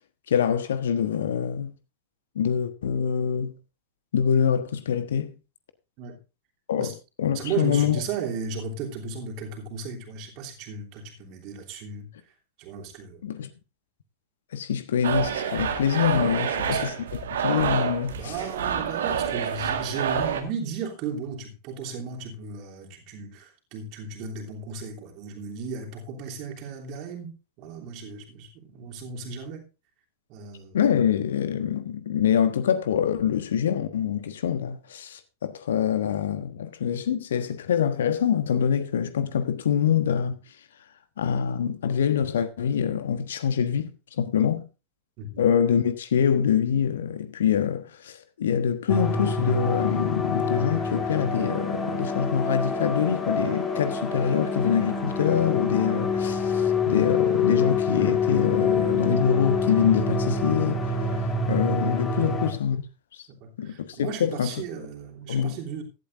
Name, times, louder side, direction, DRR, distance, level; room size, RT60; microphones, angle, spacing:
voice 1, 0.3-1.7 2.3-3.6 4.1-5.3 6.7-8.0 13.2-13.5 14.5-17.0 17.3-18.3 30.7-40.4 41.2-43.9 44.2-44.6 45.4-61.0 61.5-62.8 63.1-63.2 63.6-64.5 65.3-65.6, left 8 dB, 65° left, 1.2 m, -25 dB
voice 2, 7.3-12.1 12.6-13.2 16.4-16.8 18.1-29.6 30.3-30.8 45.2-45.4 62.2-62.3 63.4-65.8, right 5 dB, 40° right, 3.1 m, -35 dB
sound 1, 15.0-20.4, right 7 dB, 65° right, 1.7 m, -28 dB
sound 2, 48.9-62.5, left 4 dB, 20° left, 2.8 m, -26 dB
16.5 x 11.5 x 2.6 m
figure-of-eight pair, 90°, 0 cm